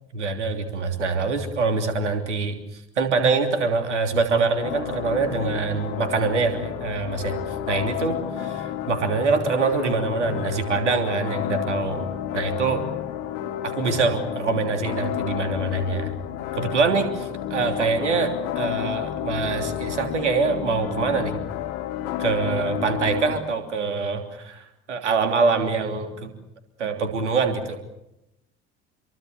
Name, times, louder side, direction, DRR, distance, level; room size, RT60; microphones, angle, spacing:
voice 1, 0.1-12.8 13.6-16.1 16.5-21.4 22.2-26.3 26.8-27.8, right 4 dB, 80° right, 6 dB, 3.2 m, -24 dB
sound 1, 4.6-23.4, left 10 dB, 65° left, 2.9 m, -31 dB
28.0 x 23.5 x 7.0 m, 0.87 s
figure-of-eight pair, 60°, 35 cm